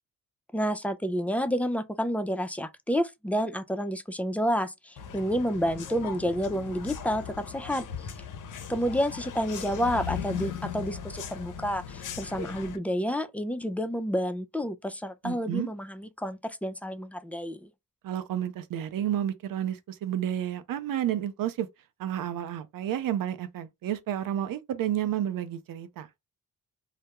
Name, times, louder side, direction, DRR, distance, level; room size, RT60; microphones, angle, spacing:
voice 1, 0.5-7.9 8.7-17.7, equal, 5° left, 0.3 m, -29 dB
sound 1, 5.0-12.8, left 7 dB, 60° left, 0.6 m, -38 dB
voice 2, 15.2-15.7 18.0-21.7 22.0-26.1, right 11 dB, 70° right, 0.5 m, -31 dB
2.2 x 2.1 x 2.8 m
cardioid pair, 55°, 35 cm